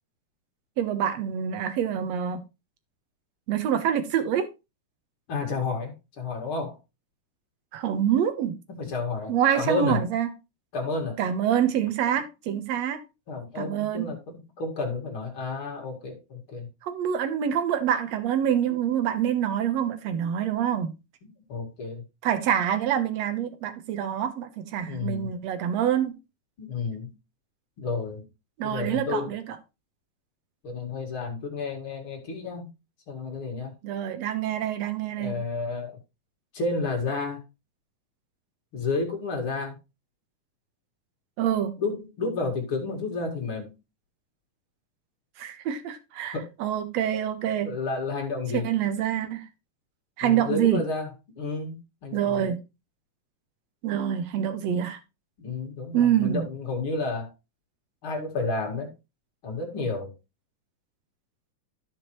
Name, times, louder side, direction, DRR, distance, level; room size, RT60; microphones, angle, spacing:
voice 1, 0.8-2.4 3.5-4.5 7.7-8.6 9.3-10.3 11.2-13.0 13.6-14.1 16.8-21.0 22.2-26.2 28.6-29.4 33.8-35.4 41.4-41.7 45.4-47.7 48.5-49.5 50.2-50.8 52.1-52.6 53.8-55.0 55.9-56.5, right 9 dB, 65° right, 2.0 m, -26 dB
voice 2, 5.3-6.8 8.7-10.0 10.7-11.2 13.3-16.7 21.2-22.0 24.8-25.3 26.6-27.1 27.8-28.3 28.6-29.3 30.6-32.7 33.1-33.7 35.2-36.0 36.5-37.4 38.7-39.8 41.8-43.8 46.2-46.5 47.6-48.7 50.2-51.1 51.4-52.5 55.4-57.3 58.0-58.9 59.4-60.1, left 3 dB, 45° left, 2.6 m, -31 dB
14.0 x 5.2 x 3.0 m
omnidirectional pair, 3.6 m